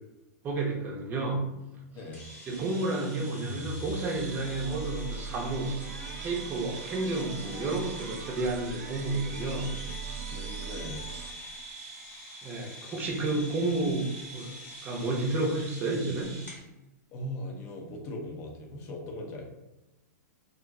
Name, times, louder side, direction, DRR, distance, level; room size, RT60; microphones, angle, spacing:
voice 1, 0.4-1.4 2.5-5.7 6.2-9.7 12.4-14.5 14.8-16.3, right 2 dB, 20° right, -1 dB, 0.6 m, -31 dB
voice 2, 1.9-2.2 10.3-11.1 17.1-19.4, left 1 dB, 35° left, 0 dB, 0.6 m, -39 dB
sound 1, 2.1-16.6, equal, 15° left, 0.9 m, -44 dB
sound 2, 2.5-11.7, right 5 dB, 70° right, 0.4 m, -41 dB
2.4 x 2.1 x 3.6 m, 0.99 s
hypercardioid pair, 145°, 9 cm